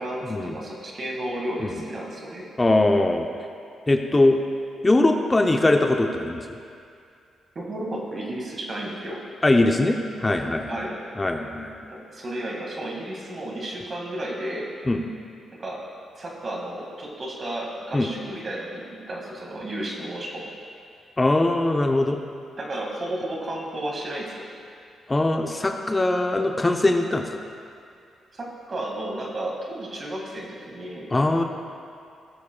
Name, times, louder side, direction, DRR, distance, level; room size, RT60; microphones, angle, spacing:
voice 1, 0.0-2.5 7.6-9.2 10.7-11.0 11.9-14.7 15.5-15.8 16.2-20.5 22.6-24.5 28.3-31.1, right 1 dB, 45° right, -1 dB, 2.0 m, -33 dB
voice 2, 2.6-3.3 3.9-4.4 4.8-6.6 9.4-10.8 11.2-11.7 14.9-15.0 17.9-18.1 21.2-22.2 25.1-27.4 31.1-31.4, left 2 dB, 25° left, 4 dB, 0.7 m, -21 dB
17.5 x 7.1 x 2.3 m, 2.5 s
supercardioid pair, 50°, 0 cm